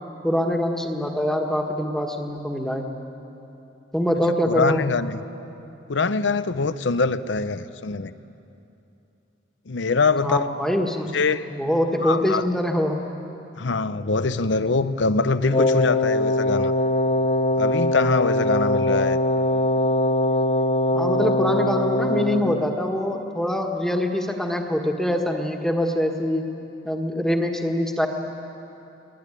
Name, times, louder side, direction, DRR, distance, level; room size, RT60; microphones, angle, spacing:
voice 1, 0.2-2.9 3.9-4.8 10.2-11.1 11.5-13.1 20.9-26.5 26.8-28.1, left 1 dB, 5° left, 2 dB, 1.6 m, -24 dB
voice 2, 4.5-5.2 5.9-8.1 9.7-10.5 11.1-11.5 12.0-12.5 13.6-16.7 17.6-19.2, left 4 dB, 80° left, 13 dB, 0.8 m, -23 dB
Wind instrument woodwind instrument, 15.5-22.8, left 1 dB, 30° left, 0.6 m, -22 dB
22.5 x 20.0 x 9.9 m, 2.9 s
head